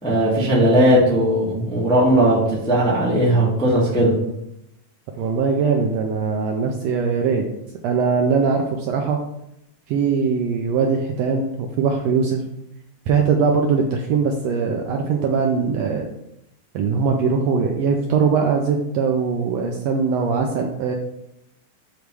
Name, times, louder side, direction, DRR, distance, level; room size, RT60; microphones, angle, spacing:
voice 1, 0.0-4.1, right 1 dB, 5° left, -7 dB, 0.7 m, -17 dB
voice 2, 5.2-7.4 7.8-9.2 9.9-12.4 13.1-16.1 16.7-20.9, right 5 dB, 80° right, 2 dB, 1.5 m, -21 dB
6.7 x 3.0 x 4.7 m, 0.81 s
omnidirectional pair, 3.4 m